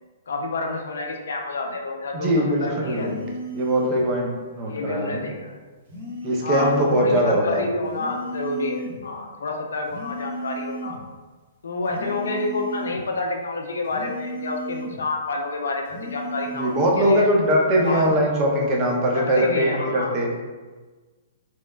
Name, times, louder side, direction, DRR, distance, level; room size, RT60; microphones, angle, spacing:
voice 1, 0.3-3.1 4.7-5.5 6.4-11.0 11.6-17.3 17.8-18.1 19.1-20.2, left 3 dB, 75° left, 2 dB, 0.3 m, -29 dB
voice 2, 2.1-3.2 3.5-5.3 6.2-7.7 16.6-20.3, equal, 35° right, -1 dB, 0.5 m, -21 dB
sound 1, 2.9-4.0 5.9-7.0 7.9-9.0 9.9-11.0 11.8-13.0 13.9-15.0 15.8-17.0 17.8-18.2, right 1 dB, 55° right, 0.9 m, -34 dB
2.9 x 2.0 x 2.2 m, 1.3 s
hypercardioid pair, 125°, 0 cm